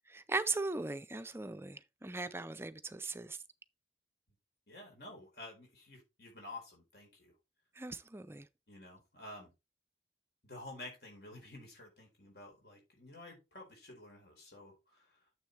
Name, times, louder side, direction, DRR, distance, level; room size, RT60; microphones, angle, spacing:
voice 1, 0.1-3.4 7.8-8.5, right 3 dB, 15° right, 0.4 m, -38 dB
voice 2, 4.7-7.3 8.7-9.5 10.4-15.2, left 2 dB, 55° left, 4.3 m, -51 dB
9.5 x 7.1 x 3.3 m
head